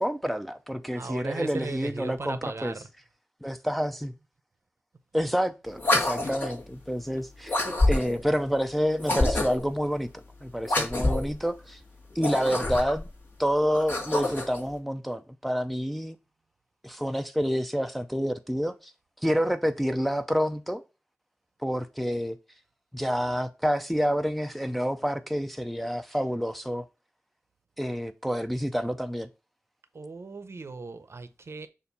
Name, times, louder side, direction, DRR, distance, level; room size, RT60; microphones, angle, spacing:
voice 1, 0.0-2.7 3.4-4.1 5.1-7.6 7.9-10.1 10.4-11.8 12.2-13.1 13.4-16.2 16.8-18.9 19.2-20.8 21.6-22.4 22.9-26.9 27.8-29.3, equal, ahead, 0.5 m, -28 dB
voice 2, 0.9-2.8 29.9-31.7, right 4 dB, 60° right, 0.7 m, -37 dB
sound 1, 5.8-6.6 7.5-8.3 9.0-9.7 10.6-11.4 12.1-13.1 13.7-14.6, left 2 dB, 40° left, 1.7 m, -26 dB
6.9 x 2.6 x 5.3 m
wide cardioid pair, 90°, 5 cm